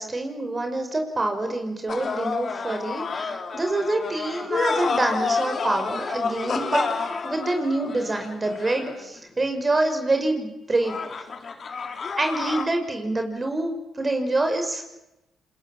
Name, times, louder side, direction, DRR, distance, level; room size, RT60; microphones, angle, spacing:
voice 1, 0.0-6.9 7.2-11.0 12.2-14.9, right 2 dB, 30° right, 5 dB, 5.6 m, -26 dB
sound 1, 1.9-9.2 10.8-12.6, left 5 dB, 50° left, 3.6 m, -29 dB
28.5 x 21.5 x 7.4 m, 0.95 s
hypercardioid pair, 50°, 0 cm